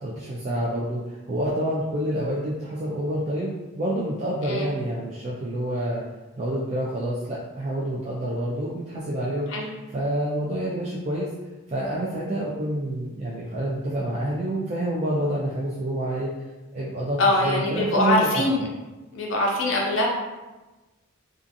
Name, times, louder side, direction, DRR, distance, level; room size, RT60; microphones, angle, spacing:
voice 1, 0.0-6.0 6.4-9.5 9.9-11.3 11.7-16.3 16.7-18.4, right 1 dB, 35° right, -6 dB, 0.3 m, -28 dB
voice 2, 17.2-18.7 19.1-20.1, left 1 dB, 65° left, -2 dB, 0.6 m, -23 dB
2.5 x 2.4 x 2.5 m, 1.1 s
head